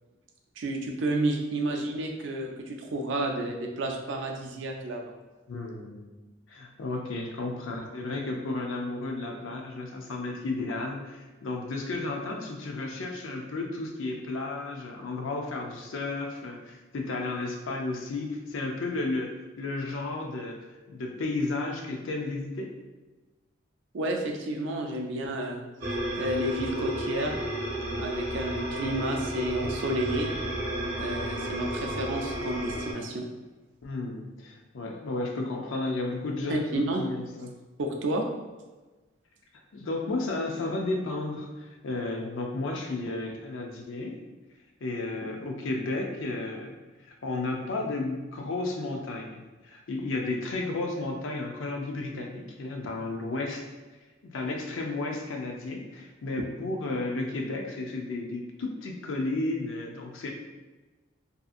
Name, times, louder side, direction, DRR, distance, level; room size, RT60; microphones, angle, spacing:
voice 1, 0.6-5.1 23.9-25.6 26.2-27.3 28.0-30.3 31.0-33.3 36.5-37.0 37.8-38.2, right 1 dB, 70° right, 2 dB, 0.4 m, -30 dB
voice 2, 5.5-6.1 6.5-20.6 20.9-22.7 33.8-37.5 39.7-44.2 44.8-46.8 47.1-53.6 54.3-60.3, left 2 dB, 80° left, 1 dB, 0.5 m, -33 dB
sound 1, 25.8-32.9, right 1 dB, 50° right, 0.8 m, -32 dB
2.7 x 2.5 x 2.4 m, 1.2 s
head